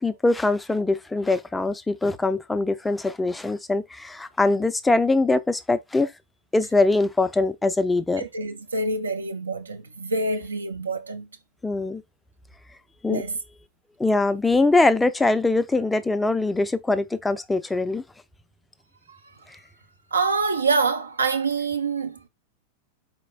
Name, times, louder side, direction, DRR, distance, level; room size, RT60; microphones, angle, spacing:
voice 1, 0.0-6.1 6.5-8.2 11.6-12.0 13.0-13.2 14.0-18.0, left 2 dB, 10° left, 0.4 m, -22 dB
voice 2, 8.2-11.3 13.1-13.4 20.1-22.3, right 4 dB, 75° right, 0.5 m, -26 dB
4.4 x 4.2 x 2.2 m
figure-of-eight pair, 90°, 0 cm